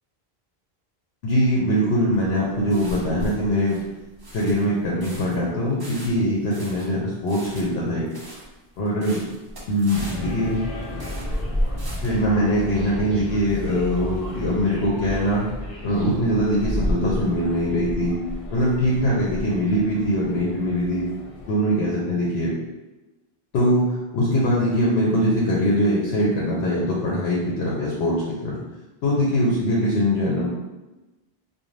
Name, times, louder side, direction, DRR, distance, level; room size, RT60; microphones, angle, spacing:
voice 1, 1.2-3.8 4.3-8.1 8.8-9.2 9.7-10.6 12.0-15.5 15.8-18.1 18.5-21.0 21.4-22.5 23.5-28.2 28.4-28.6 29.0-30.5, equal, 85° left, -5 dB, 0.9 m, -22 dB
sound 1, 2.1-12.2, equal, 35° right, 0.4 m, -39 dB
sound 2, 9.9-21.5, equal, 45° left, 0.5 m, -32 dB
2.5 x 2.2 x 3.1 m, 1.1 s
omnidirectional pair, 1.0 m